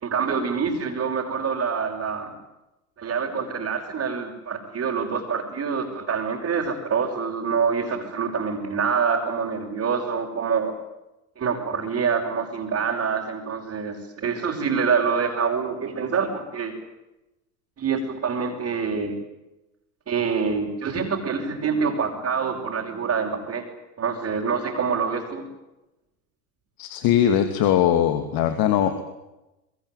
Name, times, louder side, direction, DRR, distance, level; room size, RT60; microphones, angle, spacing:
voice 1, 0.0-2.3 3.0-10.7 11.4-16.8 17.8-19.2 20.1-23.7 24.0-25.4, right 6 dB, 35° right, -4 dB, 5.9 m, -26 dB
voice 2, 26.8-29.0, left 10 dB, 55° left, 8 dB, 2.8 m, -20 dB
24.0 x 22.5 x 9.4 m, 0.96 s
hypercardioid pair, 85°, 41 cm